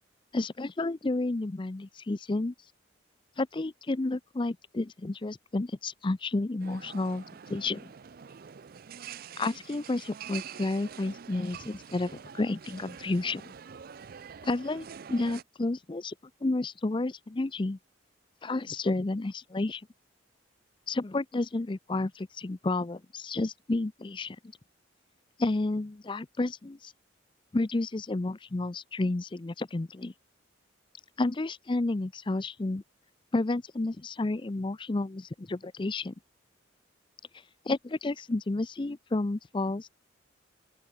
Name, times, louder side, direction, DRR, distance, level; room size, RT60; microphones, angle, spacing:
voice 1, 0.3-2.5 3.4-7.2 7.5-7.9 9.4-13.5 14.4-16.1 16.4-17.8 18.4-19.8 20.9-24.4 25.4-26.9 27.5-30.1 31.2-32.8 33.3-36.1 37.7-39.9, left 2 dB, 25° left, 0.5 m, -31 dB
sound 1, 6.6-15.4, right 7 dB, 50° right, 0.5 m, -46 dB
open air
head